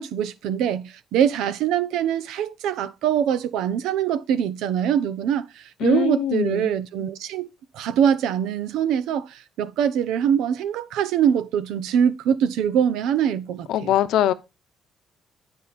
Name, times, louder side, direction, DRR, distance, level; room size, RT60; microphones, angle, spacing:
voice 1, 0.0-7.5 7.7-13.9, right 9 dB, 85° right, 0.8 m, -23 dB
voice 2, 5.8-6.7 13.7-14.3, left 11 dB, 75° left, 0.7 m, -22 dB
9.6 x 5.5 x 4.2 m
cardioid pair, 155°, 0 cm